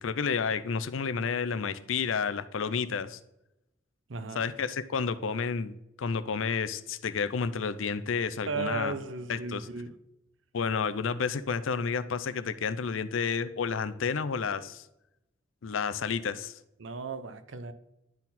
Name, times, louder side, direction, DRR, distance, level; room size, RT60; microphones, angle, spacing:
voice 1, 0.0-3.2 4.3-8.9 9.3-9.7 10.5-14.8 15.6-16.6, left 5 dB, 85° left, 14 dB, 0.5 m, -31 dB
voice 2, 4.1-4.4 8.4-9.9 16.8-17.7, right 3 dB, 75° right, 11 dB, 0.7 m, -35 dB
10.5 x 4.1 x 4.2 m, 0.86 s
head